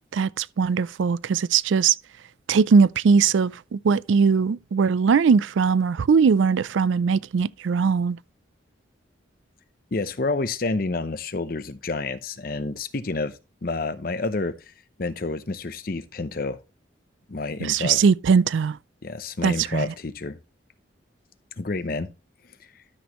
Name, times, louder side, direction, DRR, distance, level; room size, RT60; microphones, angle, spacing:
voice 1, 0.1-2.0 2.5-8.2 17.6-18.8 19.4-19.9, right 5 dB, 80° right, 0.4 m, -20 dB
voice 2, 9.9-14.7 15.0-16.6 17.3-18.0 19.0-20.4 21.6-22.1, left 3 dB, 50° left, 0.7 m, -29 dB
12.5 x 6.2 x 3.0 m
head